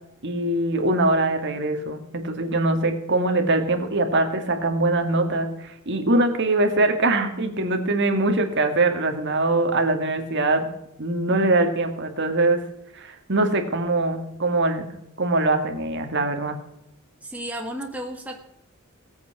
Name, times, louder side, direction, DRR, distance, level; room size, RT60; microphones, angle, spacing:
voice 1, 0.2-10.7 11.0-12.6 12.9-14.8 15.2-16.6, right 2 dB, 55° right, 5 dB, 2.2 m, -22 dB
voice 2, 17.2-18.4, right 1 dB, 5° right, 2 dB, 1.4 m, -33 dB
18.5 x 8.4 x 6.0 m, 0.83 s
head